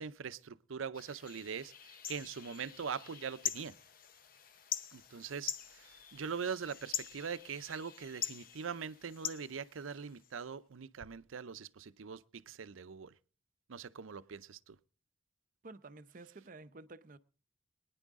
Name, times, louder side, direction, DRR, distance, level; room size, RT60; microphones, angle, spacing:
voice 1, 0.0-3.8 4.9-13.1 13.7-14.8, right 6 dB, 90° right, 0.6 m, -42 dB
sound 1, 0.9-10.3, left 9 dB, 45° left, 0.8 m, -44 dB
voice 2, 15.6-17.2, right 3 dB, 45° right, 0.7 m, -51 dB
23.5 x 10.0 x 3.6 m
head